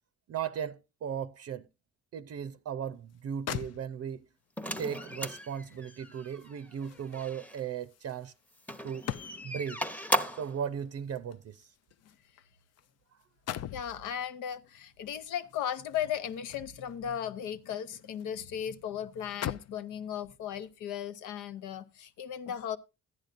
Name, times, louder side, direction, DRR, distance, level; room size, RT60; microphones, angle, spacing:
voice 1, 0.3-1.7 2.1-4.2 4.8-8.3 8.8-9.1 9.4-9.8 10.3-11.7, right 8 dB, 55° right, 0.6 m, -37 dB
sound 1, 3.1-3.2 3.5-4.3 5.7-9.7 10.8-12.9 13.2-13.9 15.4-17.0 17.4-18.4 18.7-18.8 19.2-19.9 20.6-20.7, left 10 dB, 55° left, 0.5 m, -42 dB
sound 2, 4.6-7.6 8.6-10.6, equal, 5° left, 0.8 m, -36 dB
voice 2, 13.7-22.8, left 9 dB, 85° left, 0.9 m, -36 dB
14.5 x 10.5 x 2.5 m
cardioid pair, 90°, 30 cm